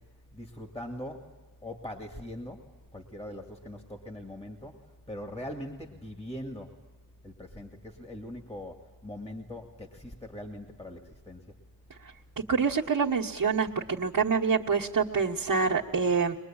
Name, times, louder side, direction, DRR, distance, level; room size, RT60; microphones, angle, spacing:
voice 1, 0.3-1.2 1.6-2.6 2.9-4.7 5.1-6.7 7.2-8.8 9.0-11.0 11.3-11.4, left 1 dB, 20° left, 4 dB, 2.3 m, -41 dB
voice 2, 12.5-16.3, right 5 dB, 70° right, -5 dB, 1.5 m, -26 dB
23.0 x 21.5 x 8.9 m, 1.3 s
wide cardioid pair, 80°, 34 cm